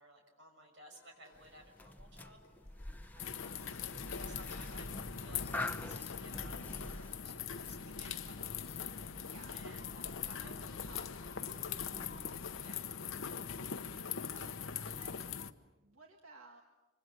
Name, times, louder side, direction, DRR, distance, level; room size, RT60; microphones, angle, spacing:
voice 1, 0.0-2.4 4.2-9.0 9.5-9.8 10.2-10.7 12.6-12.9, right 1 dB, 60° right, 3 dB, 6.2 m, -58 dB
sound 1, 0.9-6.3, left 2 dB, 40° left, 6.3 m, -70 dB
sound 2, 1.3-12.8, left 2 dB, 10° left, 0.8 m, -48 dB
voice 2, 3.1-4.2 4.5-4.6 7.6-7.9 9.2-12.2 13.3-15.4 15.8-16.6, right 2 dB, 80° right, 2 dB, 1.9 m, -60 dB
sound 3, 3.2-15.5, left 7 dB, 75° left, 1.0 m, -42 dB
25.5 x 25.0 x 7.9 m, 1.1 s
head